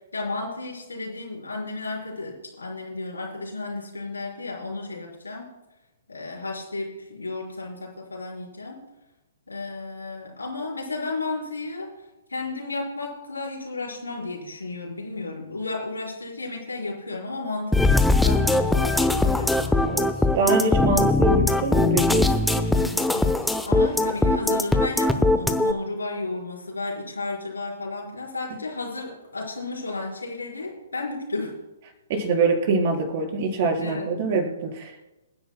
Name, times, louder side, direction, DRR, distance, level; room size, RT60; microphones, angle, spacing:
voice 1, 0.1-5.5 6.1-8.8 9.5-11.9 12.3-17.8 18.2-19.8 22.6-23.3 23.6-31.5 33.8-34.1, left 3 dB, 75° left, -2 dB, 4.6 m, -33 dB
sound 1, 17.7-25.7, left 2 dB, 5° left, 0.8 m, -20 dB
voice 2, 19.8-22.3 32.1-35.0, right 3 dB, 40° right, 1 dB, 4.3 m, -24 dB
27.5 x 10.5 x 2.2 m, 1.0 s
figure-of-eight pair, 120°, 0 cm